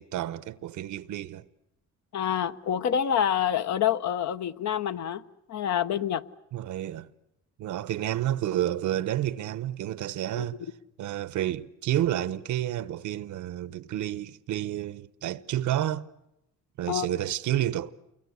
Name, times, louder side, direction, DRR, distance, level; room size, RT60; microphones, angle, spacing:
voice 1, 0.0-1.4 6.5-7.1 7.6-10.6 11.0-16.1 16.8-17.9, right 12 dB, 75° right, 0.9 m, -30 dB
voice 2, 2.1-5.2 5.5-6.2 10.3-10.5 16.9-17.1, left 9 dB, 65° left, 1.0 m, -27 dB
28.5 x 22.5 x 8.3 m
cardioid pair, 90°, 30 cm